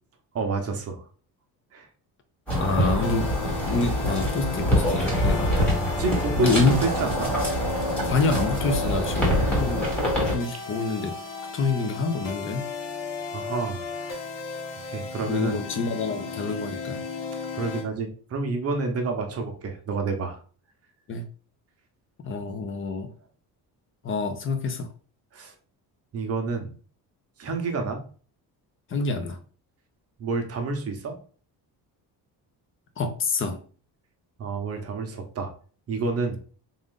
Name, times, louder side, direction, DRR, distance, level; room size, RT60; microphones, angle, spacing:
voice 1, 0.3-1.1 1.7-1.9 6.0-7.3 13.3-14.2 14.7-15.6 17.6-20.4 25.3-25.5 26.1-26.7 27.4-28.0 30.2-31.2 34.4-35.5 35.9-36.4, right 3 dB, 40° right, 4 dB, 0.8 m, -29 dB
voice 2, 2.5-5.7 6.4-6.8 8.1-11.2 11.5-12.6 15.2-17.0 21.1-21.2 22.2-23.1 24.0-24.9 28.9-29.4 33.0-33.6, left 3 dB, 30° left, 7 dB, 0.6 m, -27 dB
sound 1, 2.5-10.4, equal, 5° left, 1.5 m, -25 dB
sound 2, 3.0-17.9, left 5 dB, 55° left, 1.1 m, -35 dB
3.7 x 2.5 x 3.6 m, 0.41 s
cardioid pair, 160°, 39 cm